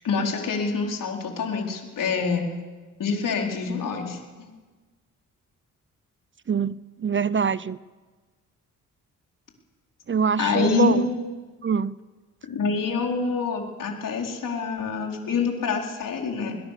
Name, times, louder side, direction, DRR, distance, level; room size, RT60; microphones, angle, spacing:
voice 1, 0.0-2.5 3.0-4.2 10.4-11.1 12.4-16.6, left 5 dB, 70° left, 1 dB, 4.5 m, -26 dB
voice 2, 6.5-7.8 10.1-11.1 11.6-12.0, right 6 dB, 35° right, 18 dB, 0.7 m, -24 dB
21.5 x 21.0 x 6.9 m, 1.3 s
cardioid pair, 65°, 34 cm